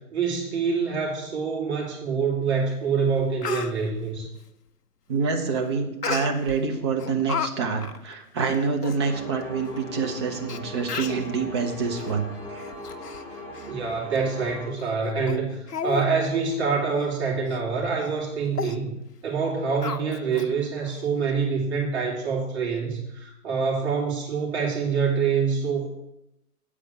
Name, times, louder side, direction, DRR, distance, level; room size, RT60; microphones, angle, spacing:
voice 1, 0.1-4.3 13.7-18.9 19.2-25.9, right 5 dB, 45° right, -3 dB, 3.4 m, -26 dB
Speech, 2.7-2.8 3.2-3.7 6.0-6.6 7.0-7.5 7.8-8.0 8.5-8.6 8.8-9.0 9.8-9.9 10.5-10.6 10.9-11.3 11.9-12.1 12.6-13.2 13.5-13.7 14.1-14.2 14.8-14.9 15.3-15.4 15.7-16.1 16.4-16.5 16.9-17.1 17.5-17.6 18.0-18.2 18.5-18.8 19.8-20.5 20.9-21.0, left 5 dB, 90° left, 0.7 m, -33 dB
voice 2, 5.1-12.6, right 5 dB, 20° right, 3 dB, 0.6 m, -27 dB
sound 1, 9.0-14.7, left 1 dB, 5° left, 1.0 m, -39 dB
8.5 x 4.9 x 7.1 m, 0.86 s
figure-of-eight pair, 130°, 46 cm